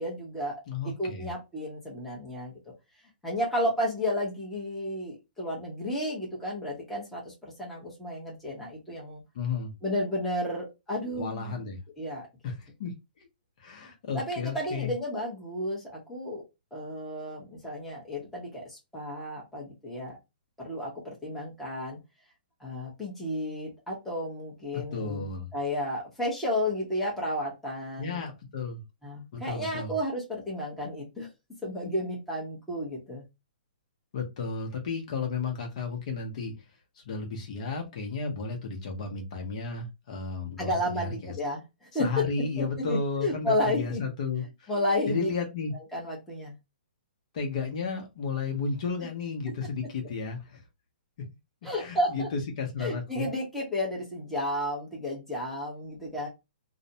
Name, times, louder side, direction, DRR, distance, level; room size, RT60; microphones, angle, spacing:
voice 1, 0.0-2.5 3.2-9.2 9.8-11.6 12.0-12.3 13.8-16.4 16.7-20.2 20.6-22.0 22.6-28.2 29.0-31.3 31.6-33.2 40.6-42.1 42.6-44.0 44.7-45.3 45.9-46.5 51.6-52.3 52.8-56.3, left 1 dB, 5° left, -4 dB, 0.8 m, -32 dB
voice 2, 0.7-1.3 9.3-9.7 11.2-11.8 12.4-12.9 13.2-13.3 13.6-14.9 24.9-25.5 28.0-28.8 29.3-30.0 34.1-36.5 37.0-41.3 42.0-44.7 45.1-45.7 47.3-50.6 51.8-53.3, left 4 dB, 45° left, 3 dB, 0.8 m, -33 dB
2.5 x 2.1 x 2.7 m, 0.23 s
hypercardioid pair, 155°, 5 cm